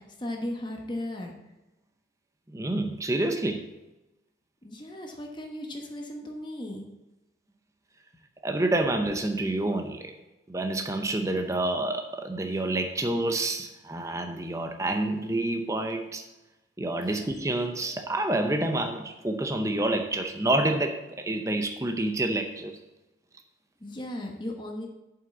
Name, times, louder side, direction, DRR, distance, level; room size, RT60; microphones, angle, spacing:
voice 1, 0.0-1.4 4.6-6.9 17.0-17.2 23.8-24.9, left 1 dB, 25° left, 1 dB, 1.1 m, -36 dB
voice 2, 2.5-3.7 8.4-10.1 10.5-16.2 16.8-22.8, right 1 dB, 15° right, 5 dB, 0.6 m, -28 dB
7.5 x 5.7 x 7.4 m, 0.99 s
head